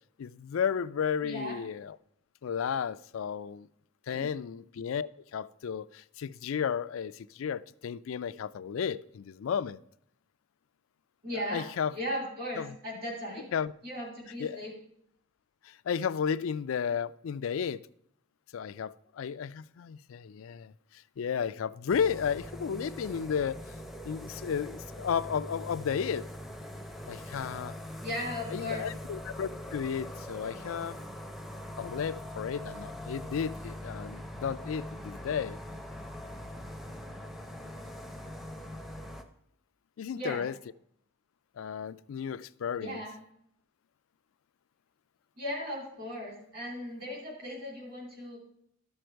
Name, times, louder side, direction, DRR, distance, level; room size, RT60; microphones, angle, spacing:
voice 1, 0.2-2.0 2.4-3.7 4.1-9.8 11.3-12.0 12.6-12.8 13.5-13.7 14.4-14.7 15.6-17.9 18.5-23.8 24.0-26.2 27.1-27.7 28.5-31.0 31.8-35.6 40.0-40.6 41.6-43.0, left 7 dB, 75° left, 0.4 m, -33 dB
voice 2, 1.2-1.6 4.1-4.3 11.2-11.6 11.9-13.5 13.8-14.7 28.0-28.9 40.1-40.4 42.8-43.2 45.4-48.4, equal, 45° right, 3.0 m, -37 dB
sound 1, 21.9-39.2, left 1 dB, ahead, 0.6 m, -42 dB
12.0 x 6.4 x 4.5 m
head